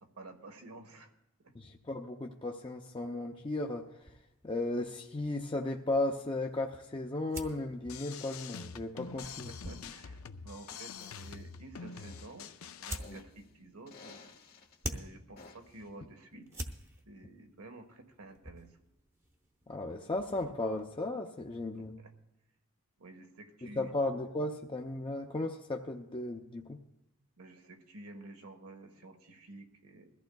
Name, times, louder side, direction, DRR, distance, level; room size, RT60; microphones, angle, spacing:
voice 1, 0.0-1.1 1.4-1.5 9.2-12.5 12.8-14.2 14.8-16.6 17.1-18.8 22.0-22.1 23.0-23.9 27.4-30.1, right 2 dB, 90° right, 5 dB, 1.4 m, -51 dB
voice 2, 1.5-4.1 4.4-9.5 19.7-22.0 23.6-26.8, left 2 dB, 25° left, 1 dB, 0.5 m, -35 dB
sound 1, 4.0-20.9, right 1 dB, 15° right, 0.8 m, -49 dB
sound 2, 7.8-13.0, left 6 dB, 70° left, 0.5 m, -46 dB
sound 3, 11.0-11.4 11.9-13.4 13.9-14.8 15.4-15.8, left 3 dB, 45° left, 1.2 m, -54 dB
21.5 x 14.5 x 2.3 m, 0.85 s
head